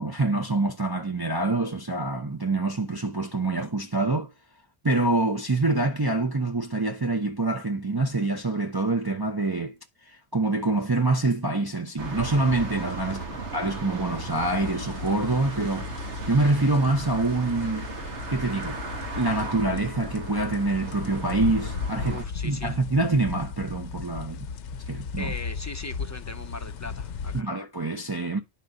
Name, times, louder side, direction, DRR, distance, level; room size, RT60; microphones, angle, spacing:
voice 1, 0.0-4.3 4.8-9.7 10.1-13.2 13.5-15.9 16.3-17.9 18.3-18.8 19.2-22.2 22.4-24.5 24.9-25.3 27.3-28.4, right 2 dB, 25° right, 0.7 m, -26 dB
sound 1, 12.0-22.3, right 2 dB, 80° right, 1.9 m, -36 dB
voice 2, 13.1-13.4 22.1-22.8 25.2-27.5, left 2 dB, 20° left, 0.5 m, -39 dB
sound 2, 14.1-27.4, left 6 dB, 90° left, 1.0 m, -36 dB
10.5 x 4.3 x 5.3 m
omnidirectional pair, 1.2 m